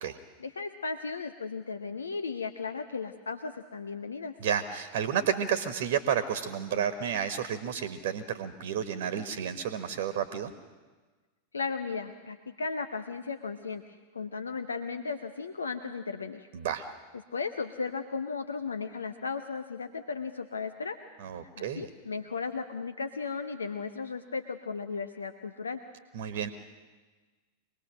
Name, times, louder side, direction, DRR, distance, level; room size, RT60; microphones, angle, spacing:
voice 1, 0.4-4.3 11.5-16.5 17.3-21.0 21.6-25.8, left 4 dB, 75° left, 9 dB, 0.9 m, -35 dB
voice 2, 4.4-10.5 16.5-16.9 21.2-21.9 26.1-26.5, right 8 dB, 55° right, 10 dB, 1.3 m, -31 dB
24.5 x 19.5 x 6.4 m, 1.3 s
figure-of-eight pair, 90°, 0 cm